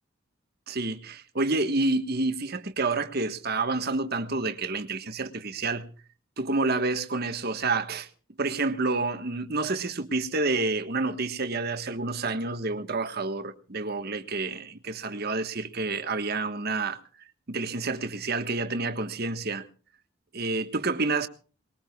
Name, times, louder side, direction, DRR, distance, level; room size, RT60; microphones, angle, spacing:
voice 1, 0.7-5.9 6.4-8.1 8.4-17.0 17.5-19.7 20.3-21.3, right 3 dB, 50° right, 1.4 m, -29 dB
24.0 x 21.0 x 2.4 m
head